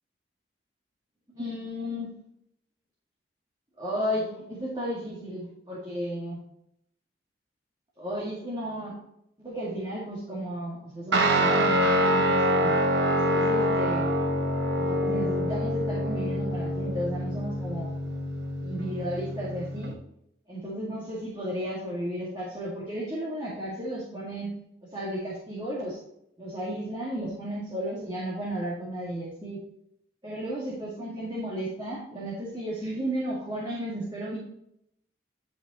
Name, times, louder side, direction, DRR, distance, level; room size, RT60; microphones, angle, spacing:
voice 1, 1.3-2.2 3.8-6.4 8.0-9.0 9.4-12.7 13.1-14.1 14.7-18.0 18.6-20.0 20.5-24.5 24.9-26.0 26.4-29.6 30.2-34.4, equal, 25° right, -6 dB, 2.1 m, -34 dB
Guitar, 11.1-19.9, equal, 70° right, 1.4 m, -26 dB
10.5 x 5.3 x 4.2 m, 0.75 s
head